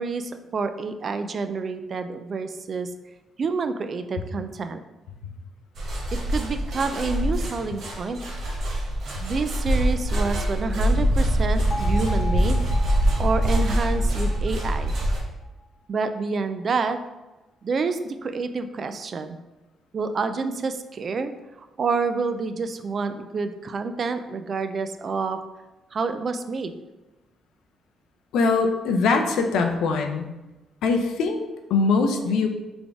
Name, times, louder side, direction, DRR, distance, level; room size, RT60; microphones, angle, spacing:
voice 1, 0.0-2.9 3.4-4.8 6.3-8.2 9.2-12.6 13.2-14.9 15.9-17.0 17.6-19.4 19.9-21.3 21.6-25.4 25.9-26.7, right 4 dB, 45° right, 9 dB, 0.3 m, -28 dB
sound 1, 5.8-15.2, equal, 65° right, 1.1 m, -24 dB
Bell, 11.7-15.8, left 2 dB, 25° left, 1.0 m, -38 dB
voice 2, 28.3-30.3 30.8-32.5, left 4 dB, 85° left, 5 dB, 0.5 m, -22 dB
4.0 x 3.5 x 3.4 m, 1.1 s
cardioid pair, 90°, 0 cm